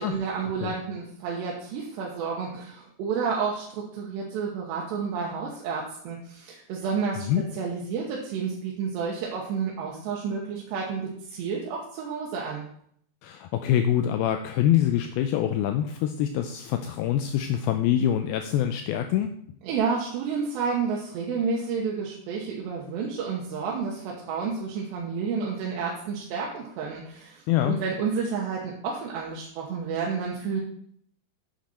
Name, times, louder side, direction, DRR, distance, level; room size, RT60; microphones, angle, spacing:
voice 1, 0.0-7.3 7.5-12.7 19.6-30.6, right 5 dB, 80° right, -3 dB, 3.3 m, -30 dB
voice 2, 13.2-19.3 27.5-27.8, left 11 dB, 90° left, 6 dB, 2.1 m, -25 dB
9.1 x 7.5 x 4.2 m, 0.66 s
omnidirectional pair, 4.9 m